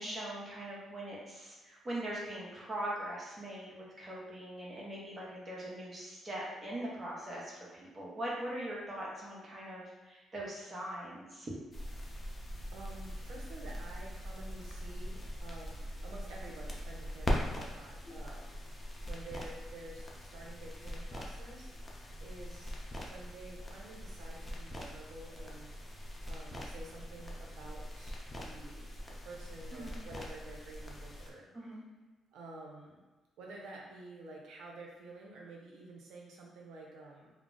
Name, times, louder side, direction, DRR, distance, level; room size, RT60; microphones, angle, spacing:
voice 1, 0.0-11.5 29.7-30.0 31.5-31.8, right 1 dB, 35° right, -5 dB, 0.8 m, -41 dB
sound 1, 11.7-31.3, equal, 20° left, 0.5 m, -42 dB
voice 2, 12.7-18.6 19.1-21.7 22.2-22.8 23.0-25.7 26.3-28.9 29.2-31.5 32.3-33.0 33.4-37.3, right 2 dB, 80° right, -1 dB, 0.6 m, -50 dB
2.3 x 2.0 x 3.7 m, 1.2 s
cardioid pair, 90°, 0 cm